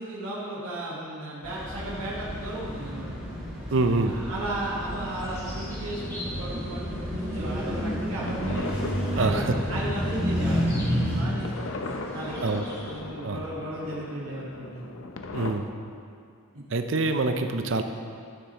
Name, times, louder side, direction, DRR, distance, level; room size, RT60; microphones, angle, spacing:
voice 1, 0.0-3.1 4.0-8.7 9.1-12.6 12.9-14.8 16.5-16.6, right 1 dB, 90° right, -7 dB, 1.6 m, -35 dB
sound 1, 1.4-11.2, equal, 10° right, 2.4 m, -30 dB
voice 2, 3.7-4.2 9.2-9.6 12.4-12.6 13.2-13.4 15.3-15.7 16.7-17.8, right 3 dB, 60° right, 7 dB, 0.6 m, -25 dB
sound 2, 4.9-13.0, left 1 dB, 15° left, 1.6 m, -44 dB
sound 3, 5.5-15.5, left 3 dB, 65° left, 0.6 m, -39 dB
11.5 x 9.7 x 3.0 m, 2.3 s
head